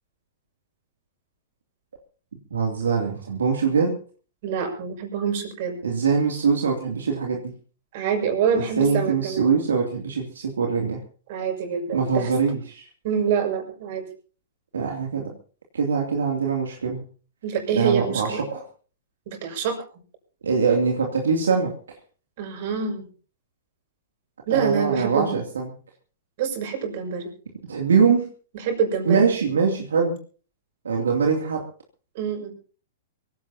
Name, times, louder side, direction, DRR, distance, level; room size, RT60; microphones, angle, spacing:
voice 1, 2.5-3.9 5.8-7.5 8.5-11.0 11.9-12.8 14.7-15.3 15.7-17.0 17.7-18.6 20.4-21.7 24.5-25.7 27.7-28.3 29.1-30.1 30.8-31.6, right 5 dB, 90° right, 1 dB, 2.8 m, -23 dB
voice 2, 4.4-5.8 7.9-9.5 11.3-12.3 13.0-14.1 17.4-18.4 19.3-19.8 22.4-23.1 24.5-25.4 26.4-27.3 28.5-29.3 32.1-32.5, right 7 dB, 55° right, 4 dB, 6.4 m, -26 dB
24.0 x 17.0 x 2.9 m, 0.39 s
hypercardioid pair, 125°, 0 cm